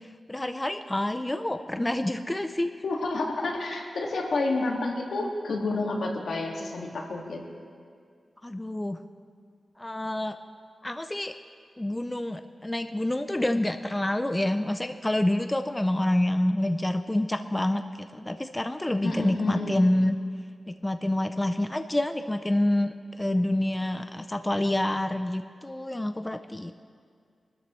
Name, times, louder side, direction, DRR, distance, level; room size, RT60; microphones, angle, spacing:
voice 1, 0.3-2.7 8.4-9.0 9.8-10.4 10.8-11.3 11.8-20.2 20.7-26.7, left 1 dB, 15° left, 8 dB, 0.4 m, -27 dB
voice 2, 2.8-7.4 19.0-19.7, left 2 dB, 75° left, 0 dB, 1.9 m, -29 dB
23.0 x 13.0 x 3.1 m, 2.2 s
wide cardioid pair, 140°, 0 cm